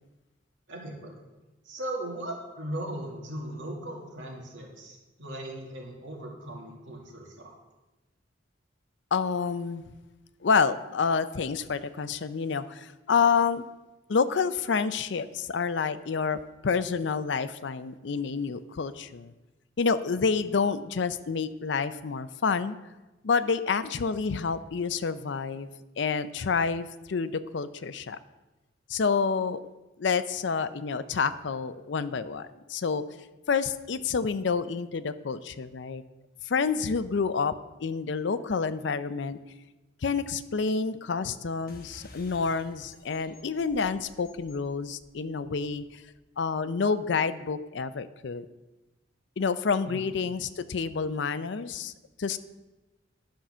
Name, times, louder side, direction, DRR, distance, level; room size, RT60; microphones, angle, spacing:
voice 1, 0.7-1.1 1.6-7.6 20.4-20.5 49.9-50.0, right 1 dB, 75° right, -1 dB, 2.3 m, -38 dB
voice 2, 9.1-9.8 10.4-13.6 14.1-19.3 19.8-22.8 23.2-25.7 26.0-28.2 28.9-29.6 30.0-33.0 33.5-36.0 36.5-37.5 37.8-39.4 40.0-46.0 46.4-48.5 49.4-51.9 52.2-52.4, left 5 dB, 65° left, 13 dB, 0.5 m, -28 dB
sound 1, 41.7-46.6, left 2 dB, 50° left, 1.2 m, -53 dB
10.5 x 5.6 x 6.1 m, 1.1 s
head